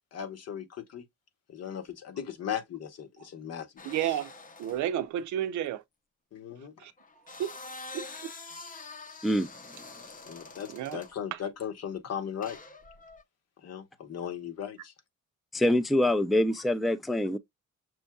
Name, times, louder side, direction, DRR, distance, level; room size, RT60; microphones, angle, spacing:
voice 1, 0.1-1.0 1.5-3.7 6.3-6.7 10.3-12.6 13.6-14.9, left 8 dB, 55° left, 1.0 m, -37 dB
sound 1, 3.8-4.9 7.0-11.2 12.4-13.2, left 3 dB, 30° left, 0.7 m, -46 dB
voice 2, 3.8-4.3 4.6-5.8 6.8-6.9 7.4-7.5 7.9-8.0 10.7-11.0 11.3-11.4, right 11 dB, 75° right, 0.5 m, -31 dB
voice 3, 15.5-17.4, left 1 dB, ahead, 0.4 m, -25 dB
6.1 x 2.6 x 2.3 m
cardioid pair, 90°, 30 cm